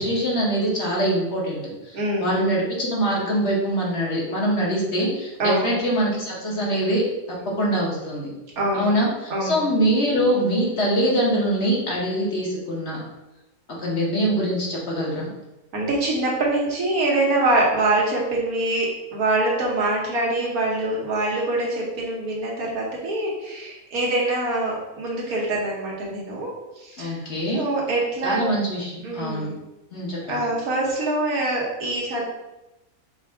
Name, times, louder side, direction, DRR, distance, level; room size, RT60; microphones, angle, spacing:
voice 1, 0.0-8.3 8.7-13.0 13.8-15.3 27.0-27.6 28.2-29.5 29.9-30.5, right 1 dB, 50° left, -3 dB, 1.2 m, -24 dB
voice 2, 1.9-2.4 5.4-5.7 8.6-8.9 9.3-9.6 15.7-27.2 27.5-28.5 29.0-29.6 30.3-32.2, right 2 dB, 85° right, -3 dB, 1.6 m, -24 dB
5.2 x 2.4 x 3.5 m, 0.99 s
omnidirectional pair, 1.5 m